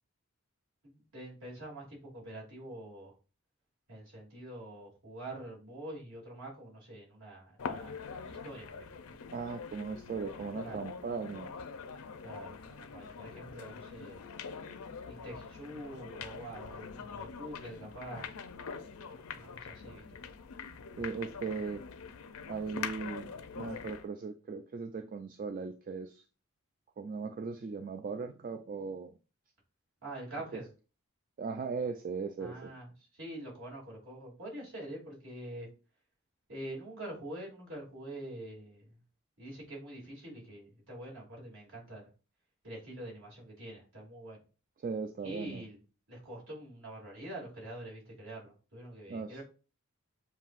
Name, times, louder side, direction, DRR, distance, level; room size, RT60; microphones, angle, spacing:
voice 1, 0.8-3.1 3.9-8.0 8.3-9.1 10.4-10.8 11.3-11.4 12.2-14.2 15.1-18.3 19.3-20.2 30.0-30.7 32.4-35.7 36.5-38.9 39.4-42.1 42.6-44.4 45.2-45.8 46.1-49.4, right 1 dB, 60° right, -3 dB, 2.6 m, -45 dB
sound 1, 7.6-24.1, left 5 dB, 75° left, 0.5 m, -44 dB
voice 2, 9.3-11.5 21.0-21.8 22.5-23.3 23.6-26.2 27.0-29.1 30.5-30.6 31.4-32.7 44.8-45.6 49.1-49.4, right 5 dB, 40° right, 7 dB, 0.3 m, -38 dB
7.1 x 2.7 x 2.5 m, 0.34 s
head